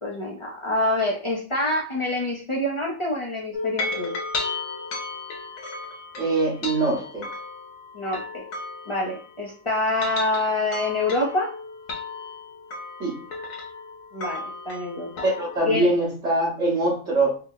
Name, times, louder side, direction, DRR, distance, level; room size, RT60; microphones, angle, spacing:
voice 1, 0.0-4.1 7.9-8.5 8.9-11.5 14.1-15.2 15.6-15.9, left 2 dB, 35° left, -3 dB, 0.5 m, -26 dB
sound 1, 3.5-9.5 9.8-15.6, left 3 dB, 75° left, 1.1 m, -34 dB
voice 2, 6.2-7.3 13.0-13.2 15.2-17.4, right 2 dB, 60° right, -7 dB, 1.5 m, -23 dB
3.4 x 2.0 x 3.7 m, 0.38 s
omnidirectional pair, 1.4 m